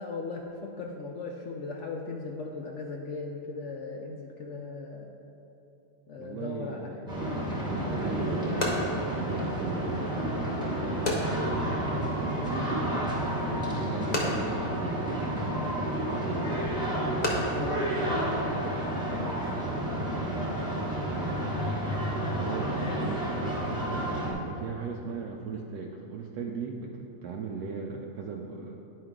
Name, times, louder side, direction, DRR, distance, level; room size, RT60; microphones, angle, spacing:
voice 1, 0.0-5.2 6.1-7.4 17.0-20.0 22.6-23.0, left 3 dB, 65° left, 1 dB, 0.7 m, -39 dB
voice 2, 6.2-11.5 12.2-16.7 17.5-17.8 21.0-21.5 22.3-23.3 24.0-28.8, right 4 dB, 75° right, 0 dB, 1.1 m, -38 dB
sound 1, 7.1-24.3, right 1 dB, 5° right, 0.9 m, -30 dB
sound 2, 7.9-18.9, left 1 dB, 35° left, 0.8 m, -37 dB
10.0 x 4.7 x 3.7 m, 3.0 s
omnidirectional pair, 1.7 m